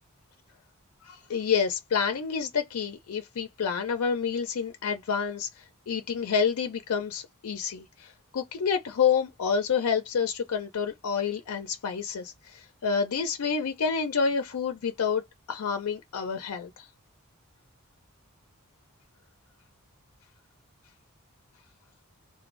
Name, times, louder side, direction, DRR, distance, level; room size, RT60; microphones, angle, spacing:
voice 1, 1.0-15.2 15.5-16.9, left 6 dB, 85° left, 0.5 m, -28 dB
2.5 x 2.2 x 3.0 m
head